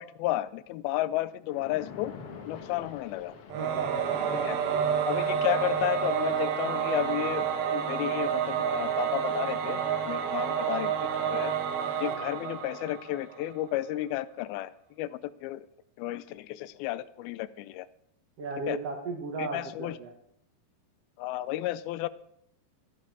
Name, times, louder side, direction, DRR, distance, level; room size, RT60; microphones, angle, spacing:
voice 1, 0.0-2.1 2.5-3.3 4.4-4.6 5.1-11.5 12.0-14.7 15.0-15.7 16.0-17.9 18.7-18.8 19.4-20.0 21.2-22.1, left 15 dB, 85° left, 16 dB, 2.4 m, -32 dB
Splash splatter, 1.4-5.5, left 6 dB, 60° left, 1.5 m, -46 dB
voice 2, 3.5-4.0 4.3-4.5 18.4-20.1, right 3 dB, 60° right, 2 dB, 1.7 m, -35 dB
Singing / Musical instrument, 3.5-13.5, right 8 dB, 80° right, 3.0 m, -29 dB
13.0 x 10.5 x 4.8 m, 0.70 s
omnidirectional pair, 4.3 m